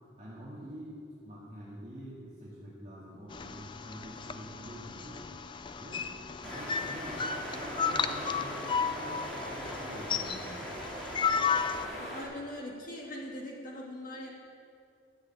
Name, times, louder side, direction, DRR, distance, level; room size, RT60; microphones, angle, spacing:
voice 1, 0.2-5.2 5.8-6.1 6.4-10.6, equal, 30° right, -9 dB, 2.1 m, -46 dB
sound 1, 3.3-11.8, left 6 dB, 25° left, 0.3 m, -34 dB
sound 2, 6.4-12.2, equal, ahead, 2.6 m, -40 dB
voice 2, 12.0-14.3, left 1 dB, 45° left, -2 dB, 2.2 m, -41 dB
12.0 x 6.5 x 8.5 m, 2.5 s
head